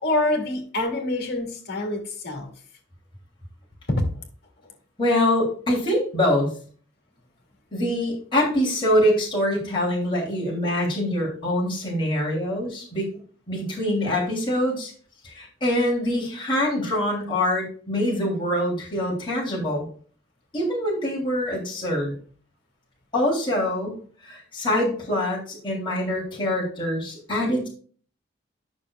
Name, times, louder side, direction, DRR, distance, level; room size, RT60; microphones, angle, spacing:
voice 1, 0.0-2.5, left 2 dB, 60° left, 2.3 m, -26 dB
voice 2, 5.0-6.5 7.7-13.1 13.5-14.9 15.2-19.9 20.5-22.1 23.1-23.9 24.2-27.7, left 1 dB, 25° left, 3.1 m, -24 dB
10.5 x 6.7 x 2.4 m
head